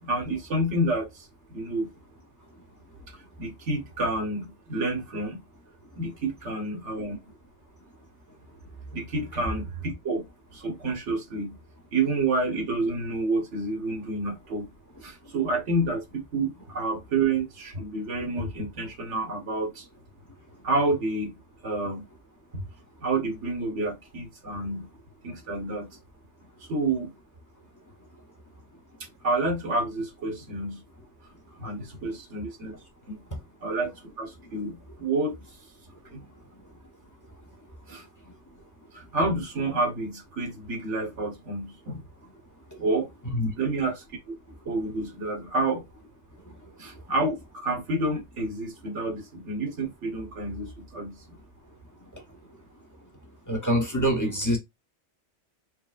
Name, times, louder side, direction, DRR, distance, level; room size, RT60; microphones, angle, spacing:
voice 1, 0.0-1.9 3.4-5.4 6.0-7.2 8.9-11.6 11.9-14.7 15.0-19.9 20.6-21.3 21.6-22.0 22.5-22.6 23.0-24.9 25.2-25.9 26.7-27.1 29.2-30.8 31.6-32.8 33.1-33.2 33.6-35.4 36.1-36.2 37.9-38.0 38.9-42.0 42.8-43.1 43.6-44.3 44.6-45.8 46.8-51.2, right 2 dB, 80° right, 1.6 m, -29 dB
voice 2, 53.5-54.6, equal, 15° left, 1.0 m, -25 dB
4.7 x 3.3 x 2.4 m
omnidirectional pair, 1.2 m